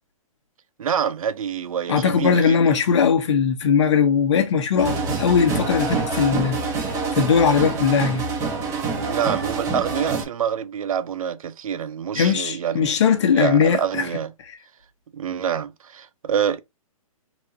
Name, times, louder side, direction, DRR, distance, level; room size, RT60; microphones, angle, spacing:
voice 1, 0.8-2.8 9.0-13.0 13.3-14.3 15.1-16.6, right 8 dB, 70° right, 0.7 m, -26 dB
voice 2, 1.9-6.6 7.1-8.2 12.1-14.1, left 6 dB, 55° left, 1.0 m, -19 dB
sound 1, 4.8-10.2, right 4 dB, 15° right, 1.0 m, -26 dB
4.0 x 2.5 x 2.8 m
hypercardioid pair, 155°, 18 cm